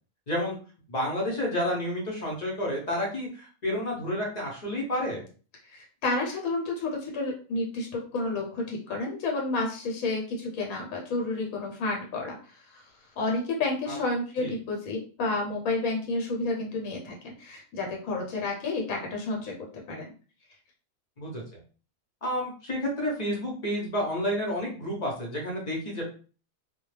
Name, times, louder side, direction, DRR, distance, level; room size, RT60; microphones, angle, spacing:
voice 1, 0.9-5.2 13.9-14.0 14.4-14.5 21.2-21.4 22.2-26.0, left 1 dB, 40° left, -2 dB, 0.6 m, -30 dB
voice 2, 5.6-12.9 13.2-19.5 19.9-20.1, left 2 dB, 80° left, 0 dB, 1.1 m, -30 dB
2.3 x 2.1 x 3.1 m, 0.38 s
omnidirectional pair, 1.5 m